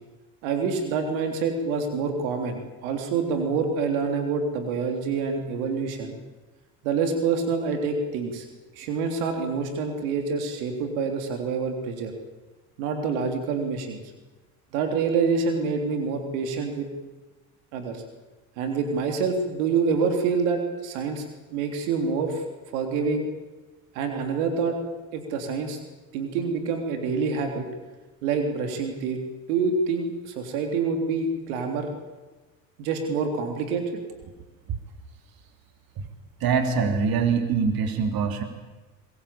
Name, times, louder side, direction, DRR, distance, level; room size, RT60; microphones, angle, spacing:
voice 1, 0.4-6.1 6.8-8.4 8.7-12.1 12.8-14.0 14.7-16.9 17.7-18.0 18.6-21.2 21.5-22.4 22.7-23.3 23.9-24.8 25.1-25.8 26.1-27.6 28.2-29.2 29.5-31.9 32.8-34.0, right 5 dB, 80° right, 5 dB, 3.4 m, -26 dB
voice 2, 36.4-38.4, right 5 dB, 60° right, 6 dB, 3.5 m, -23 dB
22.5 x 21.5 x 8.7 m, 1.2 s
hypercardioid pair, 70°, 41 cm